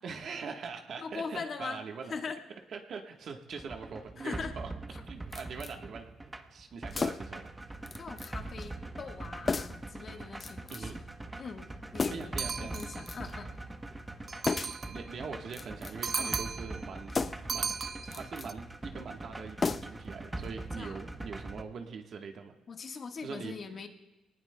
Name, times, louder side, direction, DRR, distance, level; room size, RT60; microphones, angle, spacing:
voice 1, 0.0-2.2 2.7-4.7 5.1-7.5 10.7-11.0 12.1-12.8 14.6-17.1 17.5-17.7 18.1-22.6 23.2-23.5, right 5 dB, 60° right, 3 dB, 1.3 m, -42 dB
voice 2, 1.0-1.8 2.1-2.4 4.2-4.5 4.9-5.0 8.0-10.9 11.4-11.6 11.9-12.3 12.6-13.5 16.1-16.4 20.8-21.1 22.7-23.9, left 5 dB, 50° left, 4 dB, 1.5 m, -41 dB
sound 1, 3.5-21.6, right 2 dB, 15° right, 1.0 m, -43 dB
sound 2, 5.3-5.8 6.9-7.4 7.9-8.3 8.6-8.7 9.5-9.9 10.4-11.0 12.0-12.4 12.8-13.4 14.5-14.9 15.5-16.1 17.1-17.6 18.0-18.5 19.6-20.1 20.4-20.5, left 4 dB, 35° left, 0.4 m, -34 dB
sound 3, 12.4-13.1 14.3-15.1 16.0-16.8 17.5-18.5, right 5 dB, 40° right, 0.5 m, -36 dB
22.5 x 19.0 x 2.3 m, 1.0 s
cardioid pair, 90°, 0 cm